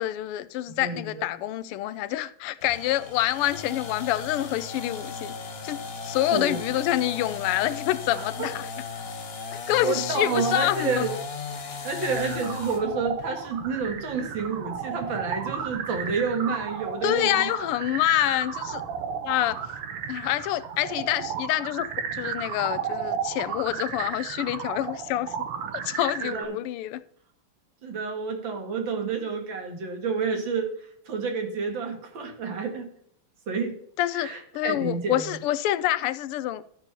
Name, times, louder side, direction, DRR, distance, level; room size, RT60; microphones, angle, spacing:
voice 1, 0.0-5.3 5.6-5.8 6.0-8.6 9.5-11.1 17.0-18.8 19.2-19.6 20.1-21.9 22.1-25.3 25.7-27.0 34.0-34.3 34.5-36.6, left 14 dB, 90° left, 1.5 m, -27 dB
voice 2, 0.8-1.3 6.3-6.6 8.2-8.5 9.5-11.1 11.8-17.7 26.2-26.6 27.8-30.7 31.1-32.9 33.5-33.8 34.1-35.3, right 4 dB, 60° right, 2.6 m, -29 dB
sound 1, 2.6-12.9, left 5 dB, 40° left, 0.9 m, -36 dB
sound 2, 12.1-26.4, right 7 dB, 85° right, 1.9 m, -34 dB
12.5 x 4.5 x 6.7 m
omnidirectional pair, 2.4 m